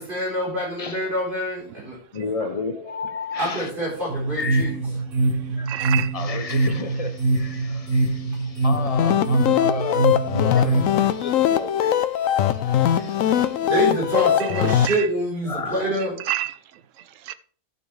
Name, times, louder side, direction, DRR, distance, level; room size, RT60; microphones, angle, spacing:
voice 1, 0.0-2.0 3.4-4.7 13.7-16.1, right 1 dB, 40° right, 4.1 m, -26 dB
voice 2, 2.1-3.7 4.4-5.0 5.6-5.8 6.1-13.7 15.5-16.0, left 4 dB, 35° left, 0.6 m, -33 dB
sound 1, 4.1-10.8, right 2 dB, 85° right, 2.0 m, -24 dB
voice 3, 5.7-6.1 14.4-15.1 16.2-16.6 17.3-17.4, right 13 dB, 70° right, 1.0 m, -28 dB
sound 2, 8.7-14.9, left 10 dB, 75° left, 1.0 m, -21 dB
12.0 x 6.9 x 3.3 m
omnidirectional pair, 1.4 m